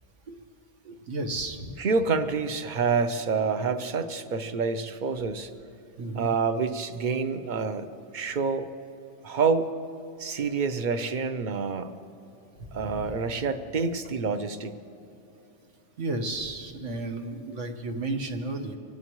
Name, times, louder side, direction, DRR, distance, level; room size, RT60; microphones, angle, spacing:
voice 1, 1.1-1.7 6.0-6.3 12.7-13.1 16.0-18.8, right 2 dB, 80° right, 4 dB, 1.6 m, -32 dB
voice 2, 1.8-5.5 6.1-8.7 9.2-9.7 10.2-11.9 12.7-14.8, right 5 dB, 45° right, 10 dB, 0.8 m, -27 dB
24.5 x 17.0 x 3.1 m, 2.9 s
omnidirectional pair, 1.2 m